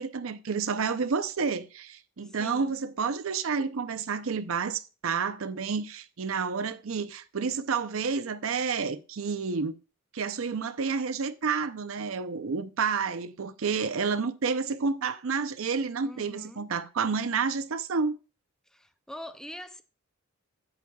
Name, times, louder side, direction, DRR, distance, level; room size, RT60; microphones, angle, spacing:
voice 1, 0.0-9.7 10.1-18.2, right 5 dB, 75° right, 0.6 m, -30 dB
voice 2, 2.2-2.8 16.0-16.7 18.7-19.8, equal, 5° left, 0.4 m, -44 dB
10.5 x 8.5 x 2.3 m
head